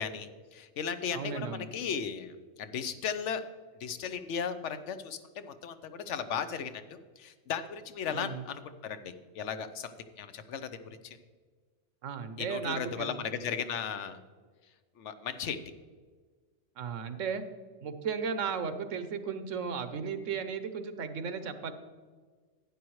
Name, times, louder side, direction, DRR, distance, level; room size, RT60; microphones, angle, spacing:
voice 1, 0.0-2.3 2.6-3.4 3.8-11.2 12.4-14.2 15.0-15.6, left 7 dB, 70° left, 11 dB, 1.0 m, -36 dB
voice 2, 1.1-1.7 8.1-8.4 12.0-13.1 16.8-17.4 17.8-21.7, right 6 dB, 85° right, 10 dB, 1.2 m, -35 dB
12.0 x 9.8 x 3.1 m, 1.5 s
omnidirectional pair, 1.3 m